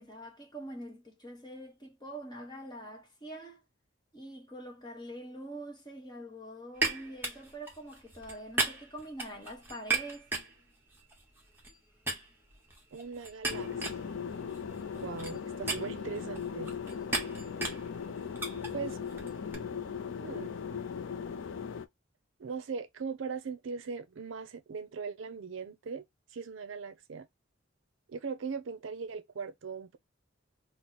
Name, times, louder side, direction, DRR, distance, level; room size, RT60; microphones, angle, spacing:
voice 1, 0.0-3.6 4.1-10.3, right 1 dB, 20° left, 1.0 m, -45 dB
sound 1, 6.8-11.8 12.1-19.6, right 3 dB, 10° right, 0.9 m, -37 dB
voice 2, 12.9-14.2 14.9-16.8 18.7-19.0 20.2-20.5 22.4-26.0 26.3-27.3 28.1-30.0, right 5 dB, 75° right, 0.5 m, -39 dB
sound 2, 13.5-21.8, left 6 dB, 70° left, 0.4 m, -38 dB
2.9 x 2.0 x 3.9 m
head